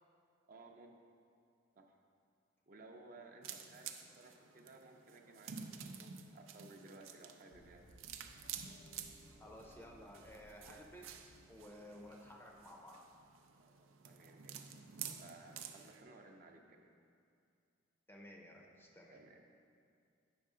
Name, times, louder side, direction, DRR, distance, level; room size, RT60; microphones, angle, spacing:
voice 1, 0.5-0.9 1.8-1.9 2.7-7.8 13.6-14.8 15.2-16.9 19.1-19.4, right 2 dB, 45° right, 2 dB, 0.6 m, -58 dB
sound 1, 3.4-16.0, right 7 dB, 90° right, 0.5 m, -51 dB
sound 2, 7.5-13.5, equal, 85° left, 0.8 m, -64 dB
voice 2, 9.4-13.1 18.1-19.2, equal, 10° left, 0 dB, 0.6 m, -55 dB
8.7 x 5.7 x 3.7 m, 2.4 s
head